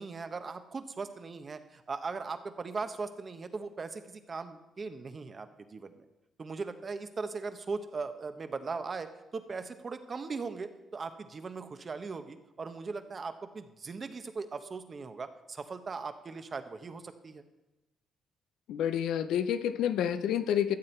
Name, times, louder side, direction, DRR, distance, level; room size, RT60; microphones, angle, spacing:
voice 1, 0.0-6.0 6.4-17.4, right 4 dB, 40° right, 9 dB, 0.9 m, -39 dB
voice 2, 18.7-20.8, left 9 dB, 85° left, 11 dB, 0.6 m, -29 dB
13.5 x 7.6 x 4.4 m, 0.99 s
cardioid pair, 90°, 0 cm